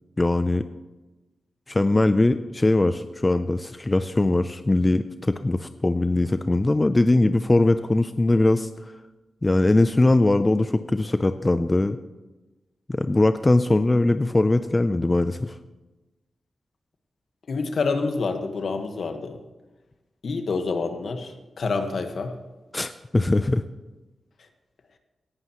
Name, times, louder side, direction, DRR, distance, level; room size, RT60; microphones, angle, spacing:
voice 1, 0.2-0.6 1.7-8.7 9.4-12.0 12.9-15.5 22.7-23.6, left 2 dB, 25° left, 10 dB, 0.4 m, -21 dB
voice 2, 17.5-19.4 20.2-22.4, left 4 dB, 65° left, 6 dB, 1.4 m, -27 dB
17.5 x 11.0 x 3.0 m, 1.1 s
cardioid pair, 85°, 0 cm